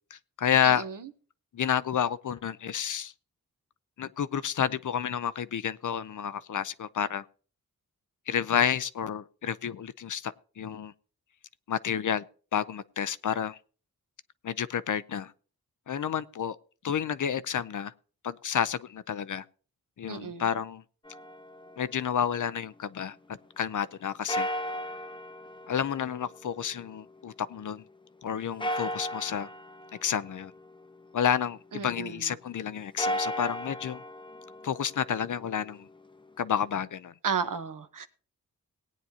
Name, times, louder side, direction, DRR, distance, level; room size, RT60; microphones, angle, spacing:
voice 1, 0.1-0.8 1.5-3.1 4.0-7.2 8.3-10.9 11.7-12.2 12.5-13.6 14.4-15.3 15.9-16.6 16.8-17.9 18.2-19.4 20.0-20.8 21.8-23.2 23.6-24.5 25.7-27.8 28.2-29.5 30.0-30.5 31.1-34.0 34.6-35.9 36.4-37.1, left 8 dB, 55° left, 0.6 m, -30 dB
voice 2, 0.6-1.0 20.1-20.4 31.7-32.2 37.2-38.1, right 6 dB, 60° right, 1.1 m, -33 dB
sound 1, 21.0-23.1 24.3-27.7 28.6-31.6 32.8-36.8, equal, 15° left, 0.7 m, -37 dB
18.5 x 9.2 x 2.8 m
wide cardioid pair, 75°, 36 cm